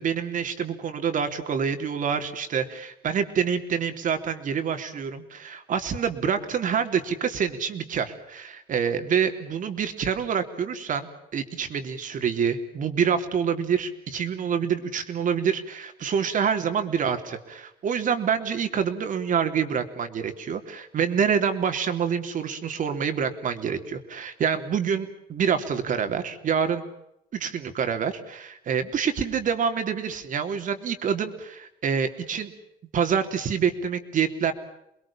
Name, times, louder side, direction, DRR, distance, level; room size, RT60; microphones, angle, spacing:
voice 1, 0.0-26.8 27.3-32.5 32.9-34.5, right 7 dB, 50° right, 7 dB, 3.4 m, -27 dB
29.0 x 21.5 x 7.3 m, 0.81 s
cardioid pair, 110°, 17 cm